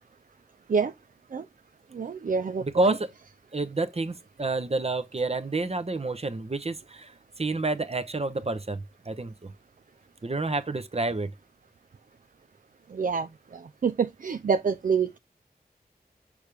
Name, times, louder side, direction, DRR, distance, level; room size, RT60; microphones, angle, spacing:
voice 1, 1.9-3.0 12.9-13.3 13.8-15.2, right 5 dB, 55° right, 0.5 m, -26 dB
voice 2, 2.6-3.1 3.5-9.5 10.2-11.3, right 2 dB, 40° right, 0.9 m, -29 dB
6.3 x 4.9 x 3.4 m
cardioid pair, 40°, 16 cm